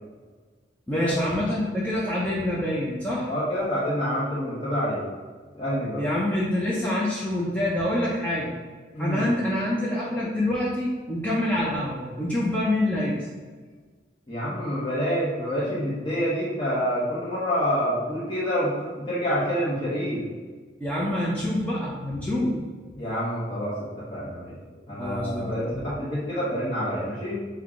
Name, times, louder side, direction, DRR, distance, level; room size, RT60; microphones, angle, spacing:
voice 1, 0.9-3.3 6.0-8.6 9.0-13.1 20.8-22.5 25.0-25.7, left 1 dB, 10° left, -6 dB, 0.5 m, -26 dB
voice 2, 3.3-5.0 5.5-6.0 8.9-9.3 14.3-20.3 22.9-24.5 24.9-27.4, equal, 25° left, -10 dB, 1.0 m, -27 dB
5.4 x 2.3 x 3.6 m, 1.4 s
head